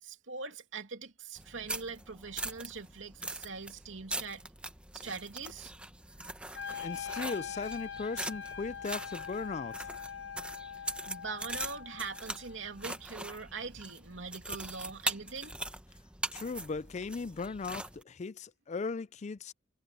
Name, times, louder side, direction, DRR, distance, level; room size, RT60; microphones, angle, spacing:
voice 1, 0.0-4.5 4.9-5.7 11.1-15.6, right 4 dB, 90° right, 2.8 m, -42 dB
sound 1, 1.4-18.0, right 2 dB, 5° right, 1.0 m, -42 dB
Wind instrument woodwind instrument, 6.5-12.6, left 7 dB, 65° left, 0.8 m, -43 dB
voice 2, 6.8-9.9 16.3-19.5, left 4 dB, 35° left, 0.4 m, -38 dB
head